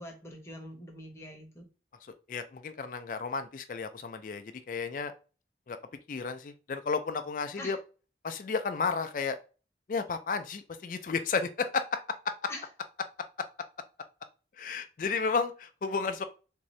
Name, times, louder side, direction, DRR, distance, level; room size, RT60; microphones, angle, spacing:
voice 1, 0.0-1.7 7.6-7.8 12.5-12.7, left 1 dB, 15° left, 2 dB, 0.8 m, -43 dB
voice 2, 2.0-5.1 5.7-5.8 6.1-7.8 8.2-9.4 9.9-12.5 14.6-16.2, left 5 dB, 45° left, 8 dB, 0.3 m, -32 dB
3.6 x 2.6 x 3.1 m, 0.35 s
head